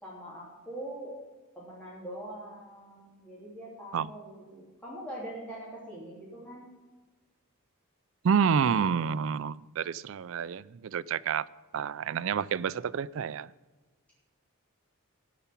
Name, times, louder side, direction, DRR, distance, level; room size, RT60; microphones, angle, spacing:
voice 1, 0.0-1.1 1.5-6.7, right 1 dB, 5° left, 2.9 m, -43 dB
voice 2, 8.2-11.5 11.7-13.5, right 6 dB, 60° right, 0.4 m, -29 dB
12.5 x 5.9 x 8.5 m
head